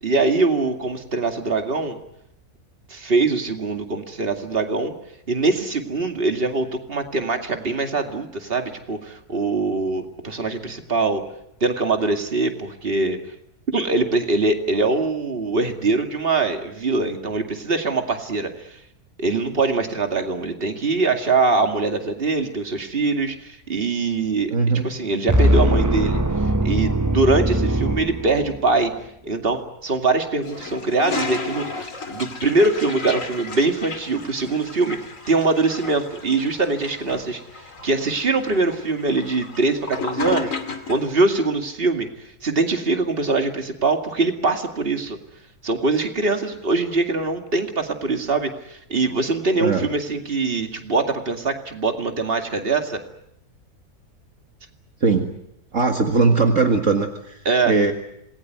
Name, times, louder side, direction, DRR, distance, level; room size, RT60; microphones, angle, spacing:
voice 1, 0.0-2.0 2.9-4.9 5.3-11.2 11.6-13.2 13.7-18.8 19.2-24.5 24.8-28.9 29.2-35.0 35.3-40.5 40.9-45.2 45.6-53.0 57.5-57.7, right 3 dB, 40° right, 5 dB, 2.5 m, -23 dB
voice 2, 24.5-24.8 49.6-49.9 55.0-55.3 55.7-57.4 57.7-57.9, right 4 dB, 55° right, 4 dB, 2.1 m, -19 dB
sound 1, 25.3-28.7, right 1 dB, 15° right, 0.8 m, -20 dB
Toilet flush, 30.4-41.1, left 4 dB, 55° left, 2.8 m, -33 dB
27.0 x 20.5 x 9.4 m, 0.78 s
omnidirectional pair, 1.6 m